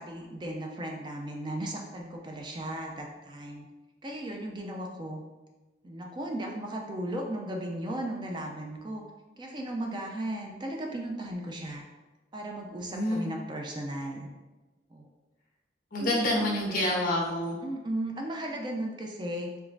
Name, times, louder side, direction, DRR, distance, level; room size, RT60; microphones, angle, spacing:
voice 1, 0.0-3.7 4.0-5.2 5.8-9.0 9.4-11.8 12.3-14.3 14.9-15.1 16.0-16.5 17.6-19.5, right 1 dB, 25° right, 1 dB, 0.4 m, -36 dB
voice 2, 12.9-13.3 15.9-17.6, left 1 dB, 50° left, -2 dB, 1.0 m, -27 dB
5.0 x 3.4 x 2.6 m, 1.2 s
head